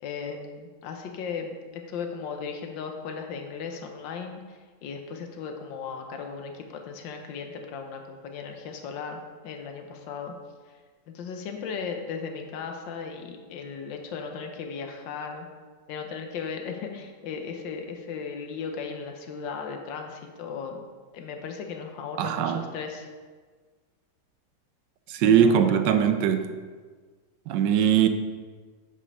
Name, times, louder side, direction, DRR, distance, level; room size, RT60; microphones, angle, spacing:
voice 1, 0.0-10.3 11.1-15.5 15.9-20.8 21.1-23.1 25.2-26.0, left 5 dB, 75° left, 4 dB, 1.5 m, -36 dB
voice 2, 22.2-22.6 25.1-26.5 27.5-28.1, right 8 dB, 75° right, 9 dB, 1.2 m, -21 dB
8.6 x 5.4 x 5.4 m, 1.5 s
omnidirectional pair, 2.1 m